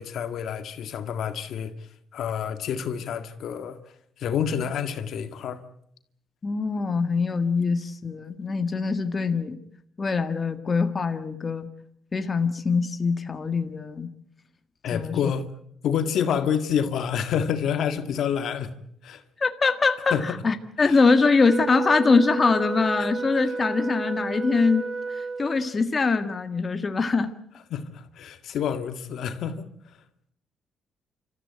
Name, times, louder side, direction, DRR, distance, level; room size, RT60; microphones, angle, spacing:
voice 1, 0.0-3.8 4.2-5.6 14.8-15.5 15.8-18.7 19.0-19.2 20.1-20.2 20.8-21.0 27.7-29.7, left 8 dB, 75° left, 2.0 m, -28 dB
voice 2, 6.4-9.6 10.0-11.7 12.1-14.1 14.9-15.1 19.4-20.2 20.4-24.9 25.2-27.3, left 4 dB, 35° left, 1.7 m, -23 dB
Wind instrument woodwind instrument, 21.4-25.8, right 4 dB, 30° right, 1.7 m, -32 dB
28.0 x 14.5 x 9.3 m
cardioid pair, 90°, 0 cm